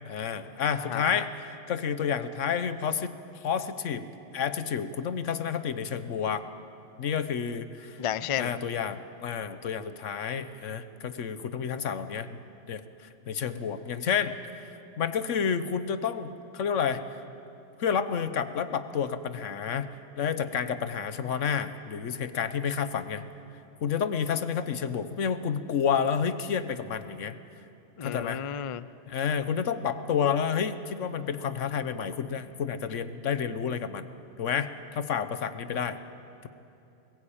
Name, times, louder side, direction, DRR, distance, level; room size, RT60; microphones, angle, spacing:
voice 1, 0.0-3.1 3.4-6.5 7.0-8.0 8.3-12.4 12.7-12.8 13.3-17.0 17.8-19.9 20.2-23.2 23.8-27.4 28.0-28.4 29.1-34.1 34.4-36.0 36.4-36.5, left 7 dB, 85° left, 12 dB, 1.3 m, -30 dB
voice 2, 0.8-1.2 8.0-8.5 28.0-28.9, left 9 dB, 50° left, 16 dB, 0.4 m, -32 dB
21.5 x 18.0 x 8.8 m, 2.9 s
omnidirectional pair, 1.2 m